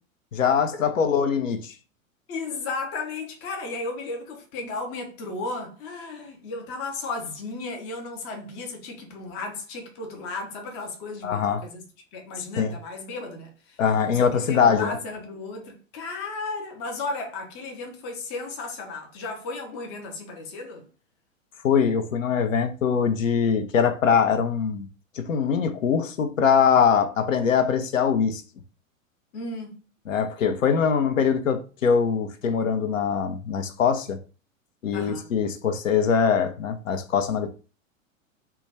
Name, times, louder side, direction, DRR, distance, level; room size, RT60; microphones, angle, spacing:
voice 1, 0.3-1.7 11.2-11.6 12.6-12.7 13.8-15.0 21.6-24.9 25.1-28.4 30.1-34.2 34.8-37.5, left 6 dB, 70° left, 0.6 m, -22 dB
voice 2, 2.3-11.9 12.1-20.8 29.3-29.8 34.9-35.3, left 3 dB, 20° left, 0.4 m, -34 dB
2.2 x 2.1 x 3.3 m
figure-of-eight pair, 95°, 41 cm